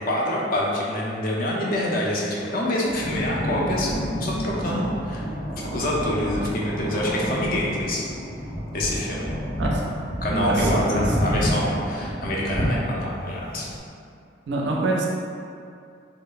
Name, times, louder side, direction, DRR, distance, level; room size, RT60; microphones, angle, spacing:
voice 1, 0.0-5.3 5.7-8.0 8.7-9.3 10.2-13.7, left 1 dB, 50° left, -4 dB, 0.4 m, -26 dB
sound 1, 2.8-13.8, equal, 10° right, 0.5 m, -29 dB
voice 2, 10.3-11.1 14.5-15.1, right 2 dB, 75° right, -2 dB, 0.4 m, -25 dB
2.9 x 2.0 x 2.3 m, 2.4 s
head